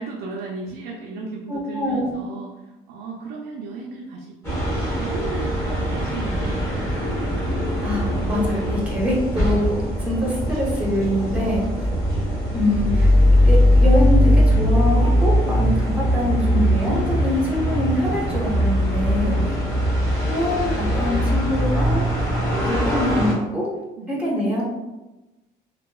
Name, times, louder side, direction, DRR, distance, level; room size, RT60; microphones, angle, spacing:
voice 1, 0.0-2.5 2.9-4.6 5.0-6.9 19.2-19.6 24.0-24.2, right 4 dB, 80° right, -2 dB, 0.4 m, -34 dB
voice 2, 1.5-2.2 7.8-11.7 12.5-13.1 13.4-19.4 20.3-22.1 22.5-23.7 24.1-24.6, left 1 dB, 5° right, -4 dB, 0.8 m, -24 dB
sound 1, 4.4-23.3, equal, 15° left, 1.1 m, -20 dB
2.9 x 2.1 x 2.3 m, 1.0 s
cardioid pair, 110°, 17 cm